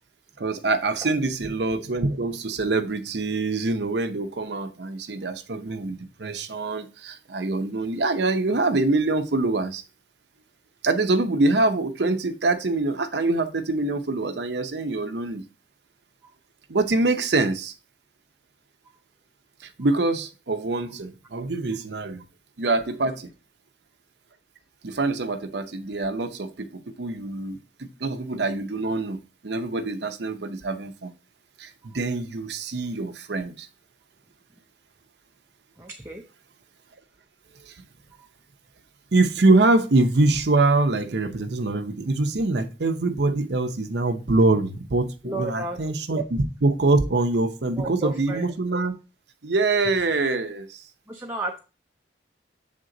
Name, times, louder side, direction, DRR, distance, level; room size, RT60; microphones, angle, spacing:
voice 1, 0.4-9.8 10.8-15.4 16.7-17.7 19.6-22.2 22.6-23.3 24.8-31.1 31.6-33.7 37.6-37.7 39.1-48.9 49.4-50.8, right 2 dB, 70° right, 0.7 m, -24 dB
voice 2, 35.8-36.2 38.2-38.3 45.2-46.2 47.8-48.5 51.1-51.6, right 2 dB, 10° right, 0.6 m, -34 dB
7.8 x 3.7 x 3.8 m
head